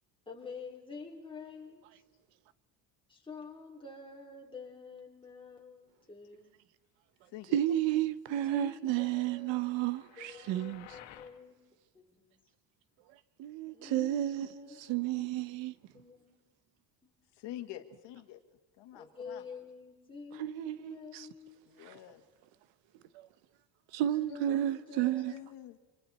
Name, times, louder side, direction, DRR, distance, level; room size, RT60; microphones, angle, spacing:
voice 1, 0.3-1.8 3.1-6.6 8.4-9.6 10.2-11.6 11.9-12.3 13.7-15.5 15.9-16.4 17.0-17.1 18.9-21.7 24.3-25.4, left 4 dB, 10° left, 3.7 m, -48 dB
voice 2, 7.5-10.9 13.4-15.7 20.4-21.3 23.1-23.3 23.9-25.3, right 12 dB, 90° right, 1.1 m, -32 dB
sound 1, 9.1-11.4, left 12 dB, 90° left, 2.0 m, -55 dB
voice 3, 17.3-18.4 18.8-19.4 21.7-22.2 25.3-25.8, left 13 dB, 70° left, 2.0 m, -46 dB
28.0 x 26.0 x 4.3 m
cardioid pair, 155°, 44 cm